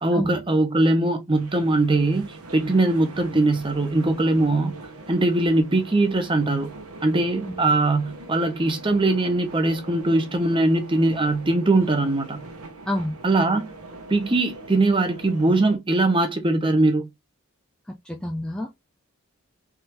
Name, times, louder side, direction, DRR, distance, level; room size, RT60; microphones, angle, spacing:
voice 1, 0.0-4.7 5.1-6.7 7.0-12.4 13.2-13.7 14.1-17.1, right 2 dB, 20° right, 0.7 m, -21 dB
sound 1, 1.3-15.8, right 2 dB, 85° right, 1.0 m, -42 dB
voice 2, 12.9-13.2 17.9-18.7, left 1 dB, 5° left, 0.4 m, -28 dB
3.6 x 3.2 x 3.0 m
head